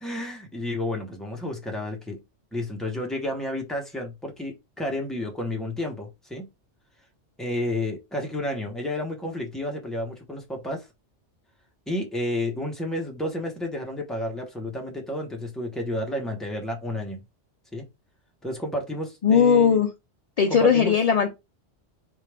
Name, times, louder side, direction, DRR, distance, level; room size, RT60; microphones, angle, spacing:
voice 1, 0.0-2.2 2.5-6.5 7.4-10.9 11.9-17.2 17.7-17.9 18.4-19.8 20.5-21.0, left 1 dB, ahead, 0.7 m, -31 dB
voice 2, 19.2-19.9 20.4-21.4, left 6 dB, 65° left, 0.3 m, -18 dB
4.4 x 2.4 x 3.3 m
omnidirectional pair, 1.2 m